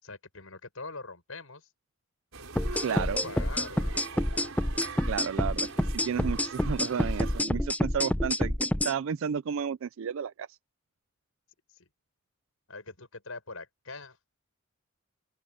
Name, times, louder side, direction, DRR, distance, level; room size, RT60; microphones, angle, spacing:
voice 1, 0.0-1.7 2.7-4.0 11.7-11.9 12.7-14.2, left 3 dB, 85° left, 5.8 m, -43 dB
sound 1, 2.3-7.4, right 4 dB, 90° right, 4.8 m, -43 dB
sound 2, 2.6-8.9, left 1 dB, 5° left, 0.7 m, -28 dB
voice 2, 2.8-3.2 5.1-8.6 8.8-10.6, right 7 dB, 70° right, 0.4 m, -32 dB
open air
head